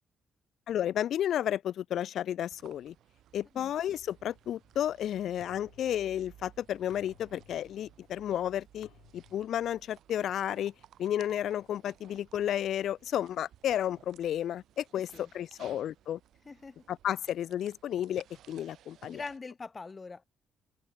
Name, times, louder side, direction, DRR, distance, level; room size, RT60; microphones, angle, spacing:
voice 1, 0.7-2.9 3.3-8.9 9.1-10.7 11.0-16.2 16.9-19.2, left 10 dB, 55° left, 0.5 m, -32 dB
sound 1, 2.5-19.4, right 11 dB, 60° right, 1.8 m, -59 dB
sound 2, 3.6-11.0, left 14 dB, 80° left, 2.6 m, -63 dB
voice 2, 16.4-16.8 19.1-20.2, left 4 dB, 20° left, 1.2 m, -43 dB
cardioid pair, 175°, 0 cm